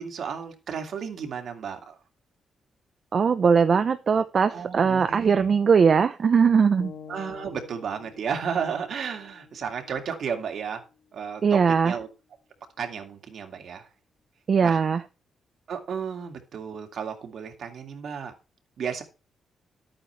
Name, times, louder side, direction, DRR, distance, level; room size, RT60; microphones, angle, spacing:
voice 1, 0.0-2.0 4.5-5.5 7.1-10.8 11.1-12.1 12.8-13.9 14.6-14.8 15.7-18.3 18.8-19.0, right 7 dB, 60° right, 5 dB, 2.3 m, -33 dB
voice 2, 3.1-6.9 11.4-12.0 14.5-15.0, right 6 dB, 45° right, 10 dB, 0.7 m, -20 dB
sound 1, 6.8-10.9, left 7 dB, 75° left, 1.7 m, -48 dB
12.5 x 8.9 x 3.3 m, 0.30 s
cardioid pair, 125°, 0 cm